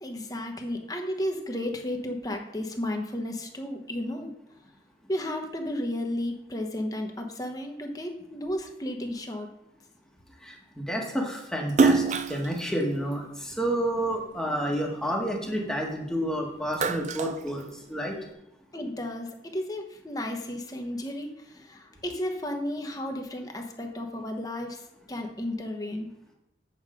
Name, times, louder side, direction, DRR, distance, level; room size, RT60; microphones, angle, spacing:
voice 1, 0.0-4.3 5.1-9.5 18.7-26.1, left 1 dB, 20° left, 3 dB, 1.1 m, -33 dB
voice 2, 10.4-18.1, equal, 5° left, -1 dB, 1.4 m, -30 dB
Splash splatter, 11.7-14.2 14.7-16.2 16.5-18.2, right 4 dB, 40° right, 0.4 m, -27 dB
8.2 x 7.6 x 5.0 m, 0.88 s
head